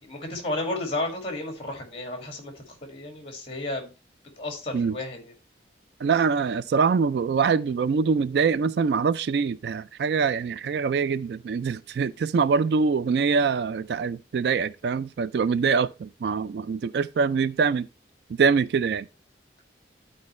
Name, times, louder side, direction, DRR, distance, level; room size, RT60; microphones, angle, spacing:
voice 1, 0.0-3.9 4.4-5.3, left 2 dB, 30° left, 2.1 m, -33 dB
voice 2, 6.0-17.9 18.3-19.1, right 5 dB, 60° right, 0.3 m, -24 dB
12.0 x 4.4 x 3.1 m
head